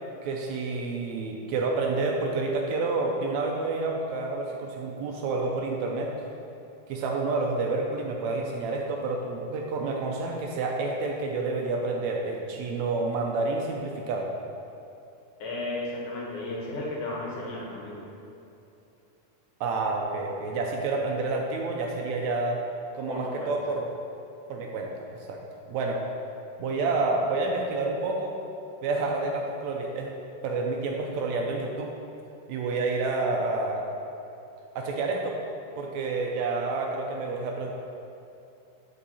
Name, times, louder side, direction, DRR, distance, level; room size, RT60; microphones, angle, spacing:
voice 1, 0.2-6.1 6.9-14.3 19.6-22.6 22.9-23.9 24.5-25.4 25.7-26.0 26.6-28.3 28.8-30.1 30.4-31.9 32.5-33.8 34.7-35.3 35.8-37.7, right 3 dB, 80° right, 1 dB, 1.8 m, -29 dB
voice 2, 15.4-18.0 23.1-23.5, left 2 dB, 80° left, -4 dB, 2.8 m, -34 dB
7.9 x 5.6 x 4.1 m, 2.8 s
omnidirectional pair, 3.5 m